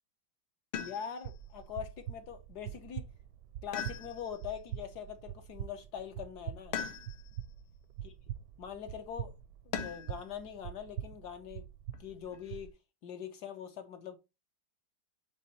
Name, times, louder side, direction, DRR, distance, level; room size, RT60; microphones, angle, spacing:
sound 1, 0.7-1.4 3.7-4.5 6.7-7.4 9.7-10.2 11.9-12.6, left 8 dB, 80° left, 1.6 m, -40 dB
voice 1, 0.8-3.1 3.6-6.8 8.6-9.3 9.6-11.6 12.0-12.7 13.0-14.2, left 8 dB, 60° left, 1.2 m, -43 dB
sound 2, 1.2-12.7, right 11 dB, 70° right, 1.1 m, -44 dB
7.5 x 3.7 x 3.9 m
omnidirectional pair, 2.2 m